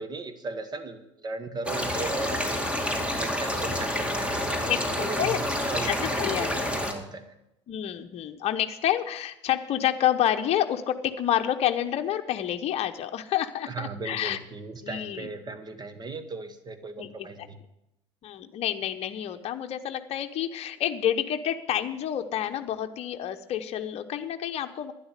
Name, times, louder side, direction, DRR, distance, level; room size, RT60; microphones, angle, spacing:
voice 1, 0.0-2.6 3.1-7.3 13.6-17.6, right 3 dB, 30° right, 10 dB, 1.4 m, -37 dB
sound 1, 1.6-6.9, left 1 dB, 10° right, 2.3 m, -28 dB
voice 2, 4.6-5.4 5.9-6.7 7.7-14.4 14.8-15.3 17.0-17.3 18.2-24.9, left 11 dB, 45° left, 6 dB, 0.9 m, -29 dB
12.0 x 10.0 x 6.7 m, 0.86 s
hypercardioid pair, 70°, 15 cm